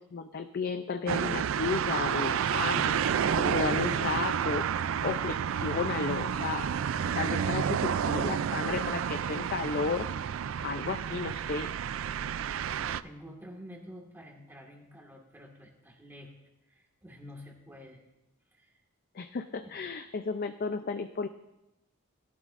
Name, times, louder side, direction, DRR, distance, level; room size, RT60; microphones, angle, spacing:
voice 1, 0.0-4.7 5.0-6.7 7.1-10.1 10.6-11.7 19.1-21.3, left 4 dB, 45° left, 8 dB, 0.4 m, -33 dB
sound 1, 1.1-13.0, right 8 dB, 60° right, 0.3 m, -30 dB
voice 2, 12.8-16.3 16.7-18.0 18.5-18.7 19.6-19.9, equal, 10° right, 0 dB, 1.7 m, -49 dB
18.0 x 12.0 x 2.5 m, 0.93 s
head